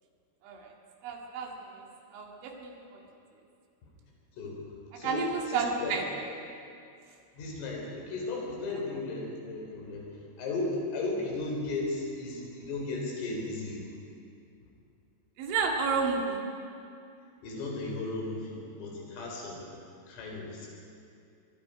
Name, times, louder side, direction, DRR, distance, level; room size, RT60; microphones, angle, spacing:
voice 1, 1.0-1.8 2.1-3.0 4.9-6.0 15.4-16.4, right 5 dB, 75° right, 1 dB, 4.4 m, -31 dB
voice 2, 4.4-4.7 5.0-6.0 7.3-10.1 10.4-13.9 17.4-19.7 20.1-20.7, left 2 dB, 85° left, -1 dB, 6.8 m, -35 dB
23.5 x 22.5 x 5.1 m, 2.4 s
omnidirectional pair, 5.6 m